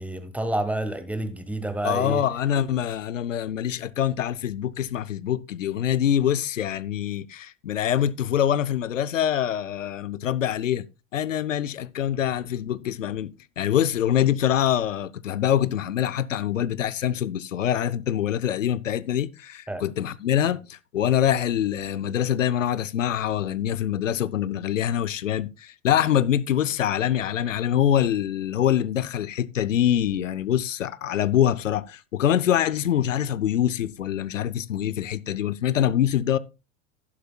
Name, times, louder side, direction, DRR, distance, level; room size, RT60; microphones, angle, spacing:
voice 1, 0.0-2.2 19.7-19.8, right 1 dB, 5° right, 1.4 m, -29 dB
voice 2, 1.8-10.9 11.1-36.4, left 10 dB, 85° left, 0.6 m, -24 dB
11.5 x 11.0 x 2.3 m
hypercardioid pair, 90°, 37 cm